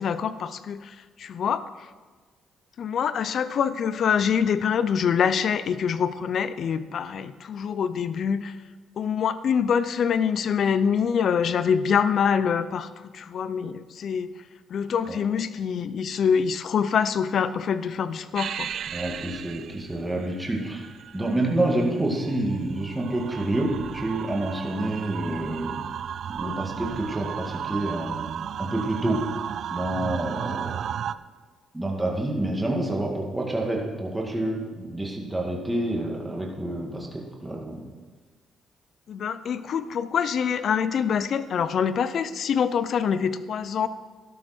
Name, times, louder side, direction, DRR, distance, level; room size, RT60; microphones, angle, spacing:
voice 1, 0.0-1.6 2.8-8.6 9.0-14.3 14.7-18.7 39.1-43.9, left 7 dB, 60° left, 14 dB, 0.6 m, -25 dB
sound 1, 18.3-31.1, right 9 dB, 65° right, 0.3 m, -34 dB
voice 2, 18.9-20.8 21.1-25.9 26.3-29.2 29.7-30.8 31.7-37.8, right 1 dB, 10° right, -1 dB, 2.3 m, -28 dB
12.5 x 11.5 x 4.5 m, 1.4 s
cardioid pair, 90°, 0 cm